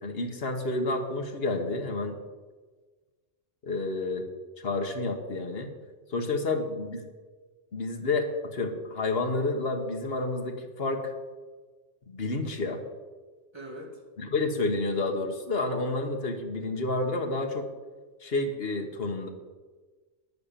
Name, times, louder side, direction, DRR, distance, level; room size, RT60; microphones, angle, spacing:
voice 1, 0.0-2.2 3.6-4.3 4.6-5.7 6.1-7.0 7.7-11.1 12.1-12.8 14.2-17.7 18.2-19.3, left 2 dB, 65° left, 4 dB, 1.6 m, -30 dB
voice 2, 12.2-12.6 13.5-14.0, right 1 dB, 25° right, -1 dB, 2.6 m, -45 dB
10.0 x 8.6 x 6.9 m, 1.4 s
omnidirectional pair, 1.1 m